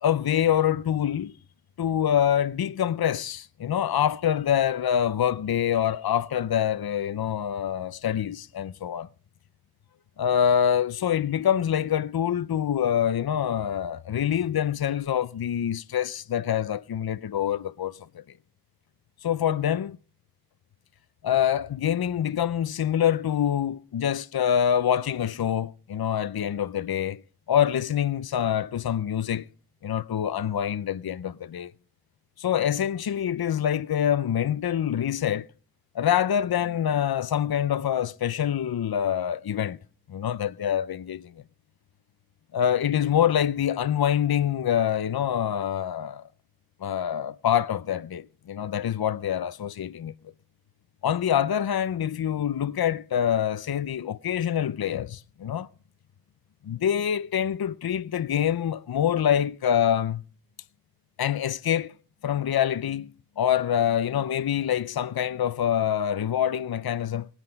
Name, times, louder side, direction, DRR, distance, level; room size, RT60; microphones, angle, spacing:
voice 1, 0.0-1.3 1.8-9.1 10.2-18.2 19.2-20.0 21.2-27.2 27.5-29.5 29.8-31.7 32.4-35.5 35.9-39.8 40.1-41.3 42.5-46.3 46.8-50.1 51.0-55.7 56.6-60.2 61.2-61.9 62.2-63.1 63.4-67.3, left 9 dB, 75° left, 0.6 m, -25 dB
19.0 x 9.9 x 5.2 m
wide cardioid pair, 60°, 38 cm